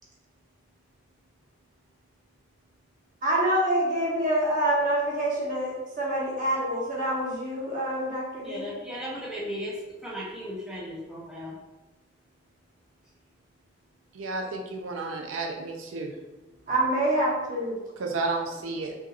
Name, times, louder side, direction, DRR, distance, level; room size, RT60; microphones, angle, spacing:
voice 1, 3.2-8.7 16.7-17.8, right 1 dB, 40° right, -5 dB, 1.1 m, -26 dB
voice 2, 8.4-11.6, equal, 5° right, -6 dB, 0.6 m, -36 dB
voice 3, 14.2-16.1 18.0-19.0, right 3 dB, 90° right, 2 dB, 0.5 m, -32 dB
5.5 x 2.7 x 2.4 m, 1.1 s
head